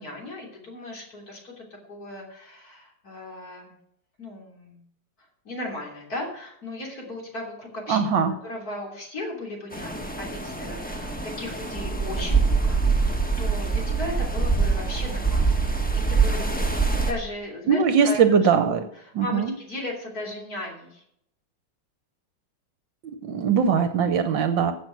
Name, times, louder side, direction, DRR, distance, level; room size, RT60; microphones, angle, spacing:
voice 1, 0.0-3.7 4.2-4.8 5.5-8.0 8.4-15.6 15.9-18.2 18.7-21.0, left 1 dB, 45° left, 0 dB, 3.6 m, -36 dB
voice 2, 7.9-8.3 17.7-18.9 19.1-19.5 23.0-24.7, right 6 dB, 65° right, 10 dB, 1.5 m, -21 dB
sound 1, 9.7-17.1, right 4 dB, 5° left, 1.1 m, -24 dB
15.0 x 6.0 x 6.1 m, 0.73 s
omnidirectional pair, 2.3 m